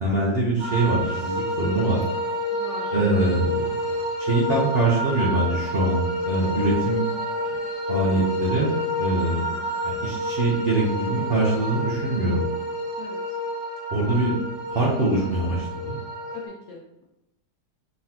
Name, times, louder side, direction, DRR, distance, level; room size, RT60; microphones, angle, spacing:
voice 1, 0.0-2.0 2.9-7.1 7.9-8.7 9.0-9.4 9.8-12.4 13.9-14.3 14.7-16.0, right 2 dB, 45° right, -6 dB, 0.8 m, -23 dB
sound 1, 0.6-16.5, equal, 85° right, 2.0 m, -29 dB
voice 2, 2.5-3.2 9.3-9.7 13.0-13.4 16.3-17.0, left 4 dB, 80° left, -2 dB, 0.6 m, -42 dB
4.2 x 3.7 x 2.9 m, 0.93 s
omnidirectional pair, 1.9 m